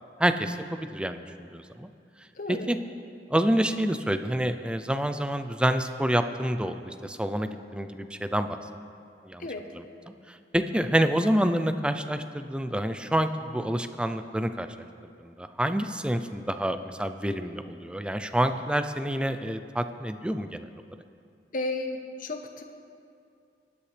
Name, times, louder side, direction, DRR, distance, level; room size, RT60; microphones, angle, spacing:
voice 1, 0.2-1.9 2.7-2.8 3.3-8.6 9.3-9.5 10.3-14.7 15.2-20.7, right 1 dB, 5° right, 9 dB, 0.5 m, -28 dB
voice 2, 2.3-2.7 9.4-9.7 21.5-22.6, left 2 dB, 50° left, 5 dB, 1.0 m, -33 dB
22.0 x 10.0 x 3.3 m, 2.5 s
head